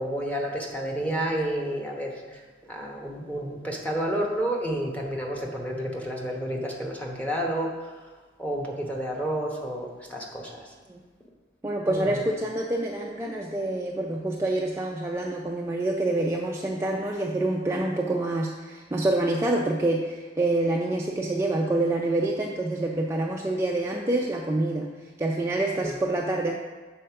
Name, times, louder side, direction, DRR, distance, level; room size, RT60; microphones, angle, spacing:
voice 1, 0.0-2.4 2.7-7.7 8.4-10.6 11.9-12.2 25.8-26.1, right 1 dB, 10° left, -1 dB, 1.0 m, -30 dB
voice 2, 11.6-24.9 25.2-26.5, right 2 dB, 15° right, -1 dB, 0.4 m, -27 dB
6.6 x 4.3 x 5.7 m, 1.3 s
head